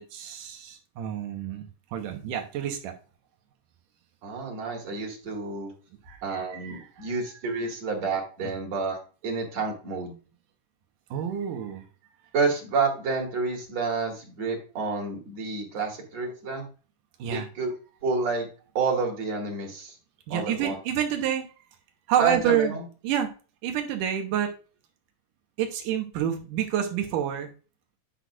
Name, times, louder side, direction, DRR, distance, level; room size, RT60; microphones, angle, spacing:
voice 1, 0.0-2.9 6.1-7.1 7.5-7.6 8.4-8.5 11.1-11.8 17.2-17.5 20.3-21.5 22.1-22.7 23.0-23.3 23.6-24.5 25.6-27.5, right 10 dB, 90° right, 4 dB, 2.6 m, -28 dB
voice 2, 4.2-5.7 6.2-10.1 12.3-16.6 17.3-17.7 18.0-18.5 18.7-20.0 20.3-20.8 22.2-22.8, right 4 dB, 55° right, 0 dB, 3.1 m, -29 dB
9.7 x 6.1 x 2.5 m, 0.35 s
omnidirectional pair, 3.7 m